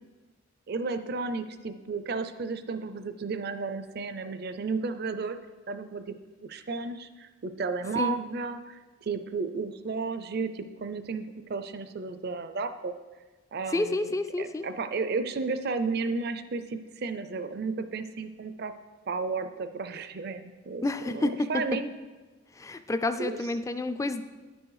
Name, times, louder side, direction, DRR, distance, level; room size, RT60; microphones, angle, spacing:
voice 1, 0.7-5.4 5.7-6.1 6.4-13.0 13.5-14.1 14.4-18.7 19.1-21.9 23.2-23.4, right 4 dB, 55° right, 10 dB, 0.5 m, -33 dB
voice 2, 13.7-14.7 20.8-21.5 22.6-24.2, left 2 dB, 15° left, 10 dB, 0.3 m, -29 dB
9.6 x 6.2 x 4.8 m, 1.3 s
head